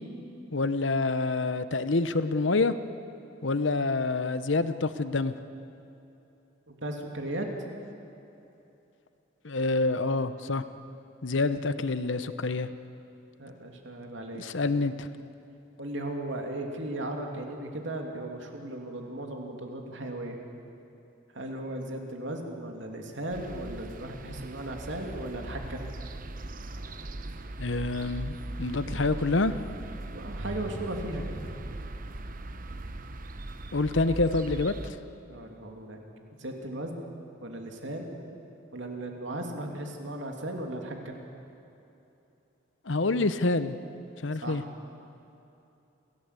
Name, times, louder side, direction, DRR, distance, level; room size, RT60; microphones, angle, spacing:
voice 1, 0.5-2.7 3.4-5.3 9.4-10.6 11.2-12.7 14.3-15.1 27.6-29.5 33.7-35.0 42.9-43.8 44.2-44.6, left 3 dB, 70° left, 12 dB, 0.9 m, -27 dB
voice 2, 6.7-7.5 13.4-14.4 15.8-20.4 21.3-25.8 30.1-31.4 35.3-36.0 36.4-37.0 37.4-38.1 38.7-41.2 44.4-44.7, right 1 dB, 70° right, 2 dB, 2.9 m, -36 dB
sound 1, 23.3-34.9, right 1 dB, 45° right, 0.9 m, -39 dB
27.5 x 17.0 x 8.3 m, 2.9 s
head